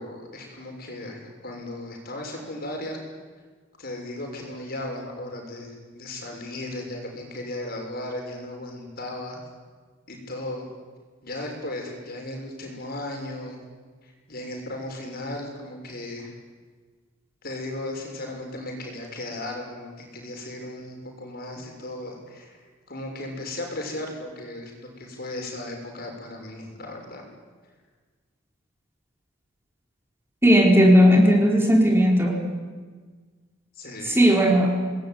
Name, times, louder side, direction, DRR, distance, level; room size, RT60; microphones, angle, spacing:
voice 1, 0.0-3.0 3.8-9.4 10.1-10.6 11.2-13.6 14.0-16.3 17.4-27.2 33.7-34.3, left 1 dB, 55° left, 1 dB, 6.7 m, -36 dB
voice 2, 30.4-32.4 34.0-34.8, equal, 15° right, 0 dB, 4.4 m, -16 dB
29.0 x 20.5 x 9.6 m, 1.5 s
head